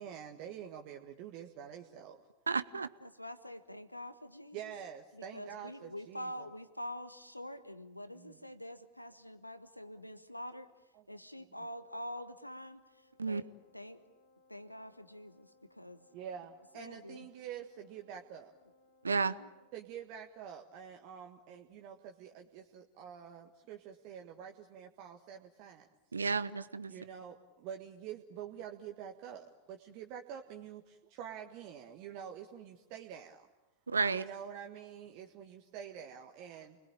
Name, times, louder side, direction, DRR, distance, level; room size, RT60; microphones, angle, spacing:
voice 1, 0.0-2.2 4.5-6.5 8.1-8.4 16.1-18.5 19.7-25.9 26.9-33.5 34.1-36.8, right 9 dB, 45° right, 3 dB, 1.6 m, -47 dB
voice 2, 2.5-2.9 13.2-13.4 19.0-19.3 26.1-26.9 33.9-34.2, right 4 dB, 75° right, 16 dB, 0.8 m, -32 dB
voice 3, 3.0-4.7 5.1-10.7 11.1-13.5 13.7-14.1 14.5-16.1 16.7-17.2 19.2-19.5, left 1 dB, 85° left, 12 dB, 1.4 m, -46 dB
Wind instrument woodwind instrument, 11.7-19.9, left 2 dB, 50° left, 2.7 m, -68 dB
29.5 x 21.0 x 8.8 m, 1.1 s
figure-of-eight pair, 90°, 0 cm